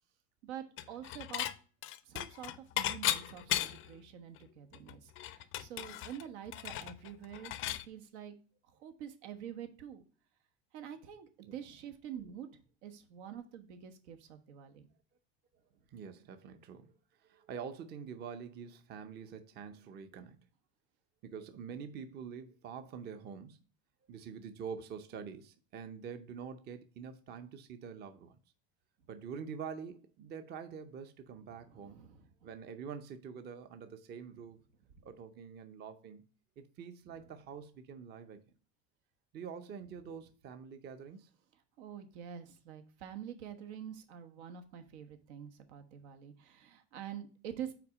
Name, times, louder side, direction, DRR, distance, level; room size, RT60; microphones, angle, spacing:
voice 1, 0.4-1.5 2.0-8.3 8.8-10.0 10.7-12.5 12.8-14.9 31.7-32.5 41.8-47.7, right 9 dB, 85° right, 1.3 m, -47 dB
Dishes pots and pans / Chink clink, 0.8-1.5 1.8-3.9 4.4-4.5 4.7-7.8, left 13 dB, 40° left, 0.5 m, -36 dB
voice 2, 15.9-16.9 17.2-20.4 21.2-23.6 24.1-28.4 29.1-32.0 32.4-34.6 35.0-36.3 36.6-38.4 39.3-41.3, right 6 dB, 30° right, 0.6 m, -46 dB
5.9 x 4.2 x 4.7 m
supercardioid pair, 140°, 33 cm